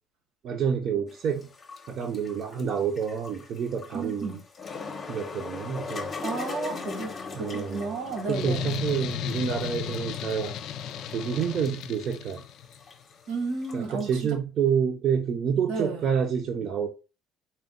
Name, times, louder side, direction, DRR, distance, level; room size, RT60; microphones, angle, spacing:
voice 1, 0.4-1.5 1.9-4.4 5.1-6.1 7.3-7.9 8.3-10.5 11.1-12.4 13.7-16.9, right 7 dB, 45° right, 0.6 m, -28 dB
sound 1, 1.1-14.2, left 4 dB, 25° left, 0.7 m, -40 dB
voice 2, 3.9-4.4 6.2-8.7 13.3-14.1 15.7-16.0, right 3 dB, 85° right, 1.2 m, -32 dB
sound 2, 8.3-12.8, left 10 dB, 65° left, 0.3 m, -35 dB
4.4 x 2.2 x 3.7 m
cardioid pair, 155°, 0 cm